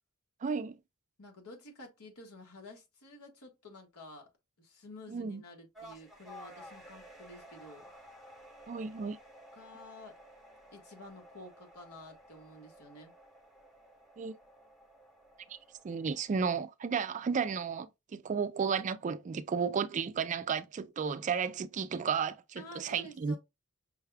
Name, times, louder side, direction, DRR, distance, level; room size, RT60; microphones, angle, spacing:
voice 1, 0.4-0.8 5.1-5.4 8.7-9.2 14.2-14.3 15.5-15.6 15.8-23.4, right 6 dB, 35° right, 0.3 m, -33 dB
voice 2, 1.2-4.3 4.6-7.9 9.5-10.2 10.7-13.1 22.6-23.4, left 1 dB, 85° left, 1.5 m, -51 dB
sound 1, 5.7-16.5, equal, ahead, 0.8 m, -54 dB
5.5 x 2.3 x 3.3 m
head